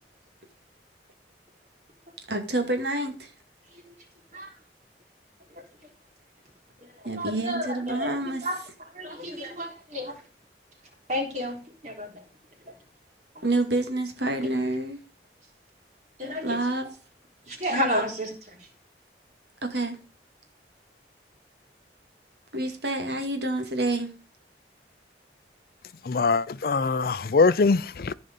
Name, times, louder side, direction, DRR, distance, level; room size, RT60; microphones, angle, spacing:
voice 1, 2.3-3.3 7.0-8.5 13.4-15.0 16.4-16.9 19.6-20.0 22.5-24.1, right 2 dB, 70° right, 2.3 m, -28 dB
voice 2, 7.2-8.1 8.4-8.6 8.9-10.1 11.1-11.6 11.8-12.2 13.3-13.4 16.2-16.6 17.5-18.5, equal, 40° right, 4.0 m, -31 dB
voice 3, 26.0-28.1, left 4 dB, 55° left, 0.5 m, -22 dB
15.0 x 5.3 x 5.3 m
head